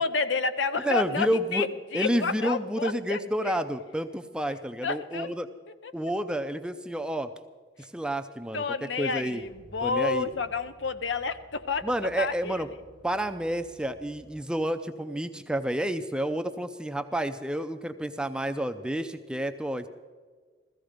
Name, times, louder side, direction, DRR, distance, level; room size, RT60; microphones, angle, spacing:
voice 1, 0.0-3.2 3.5-3.6 4.8-5.3 5.8-5.9 8.5-11.9 12.2-12.6, left 4 dB, 80° left, 12 dB, 0.7 m, -30 dB
voice 2, 0.8-1.7 1.9-5.5 5.9-7.3 7.8-8.6 9.0-9.4 9.8-10.3 11.8-12.7 13.0-19.9, right 1 dB, 5° right, 8 dB, 0.5 m, -30 dB
sound 1, 9.4-14.4, right 2 dB, 25° right, 0.9 m, -54 dB
15.5 x 15.0 x 5.1 m, 1.5 s
head